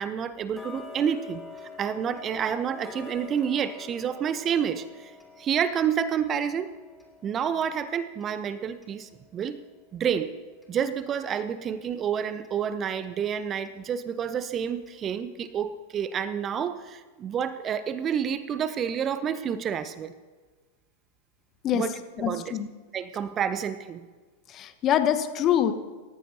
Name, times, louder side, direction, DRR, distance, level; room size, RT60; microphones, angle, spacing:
voice 1, 0.0-1.4 1.8-6.8 7.2-9.6 9.9-10.3 10.7-20.1 21.7-22.5 22.9-24.0, right 8 dB, 25° right, 14 dB, 0.7 m, -29 dB
Tick-tock, 0.5-11.4 11.8-11.9 12.4-12.5 13.0-13.1 13.6-13.7 14.2-14.3 14.9-15.0 15.4-15.5, left 4 dB, 5° left, 2.9 m, -47 dB
voice 2, 22.2-22.7 24.5-25.7, left 10 dB, 30° left, 9 dB, 1.1 m, -24 dB
27.5 x 14.5 x 2.8 m, 1.4 s
figure-of-eight pair, 90°, 0 cm